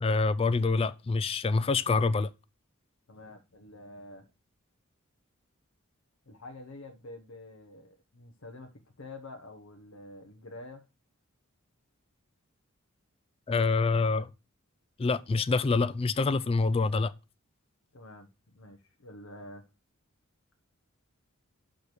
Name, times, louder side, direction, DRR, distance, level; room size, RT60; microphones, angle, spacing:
voice 1, 0.0-2.3 13.5-14.3 15.0-17.1, left 3 dB, 25° left, 0.3 m, -26 dB
voice 2, 3.1-4.3 6.3-8.7 9.0-10.9 17.9-19.7, left 2 dB, 70° left, 1.0 m, -47 dB
6.1 x 5.1 x 6.6 m
head